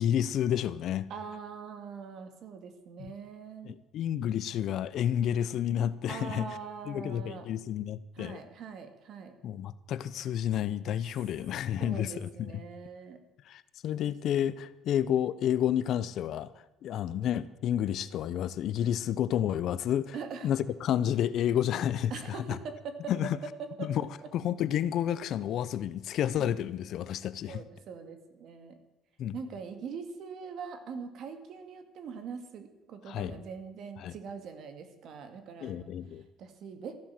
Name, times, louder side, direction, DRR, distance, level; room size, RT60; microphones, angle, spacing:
voice 1, 0.0-1.1 3.0-3.1 3.6-6.5 6.9-8.4 9.4-12.5 13.5-16.5 16.8-20.2 20.4-22.6 23.1-23.4 23.8-24.1 24.3-27.6 29.2-29.3 33.1-33.4 34.0-34.1 35.6-36.2, left 10 dB, 55° left, 16 dB, 0.6 m, -30 dB
voice 2, 1.1-3.8 6.1-7.5 8.2-9.3 11.8-13.2 20.1-20.5 22.1-23.9 26.4-26.6 27.5-28.8 29.3-35.9 36.4-37.0, right 5 dB, 50° right, 8 dB, 2.1 m, -42 dB
14.0 x 11.5 x 7.6 m, 0.97 s
cardioid pair, 145°, 0 cm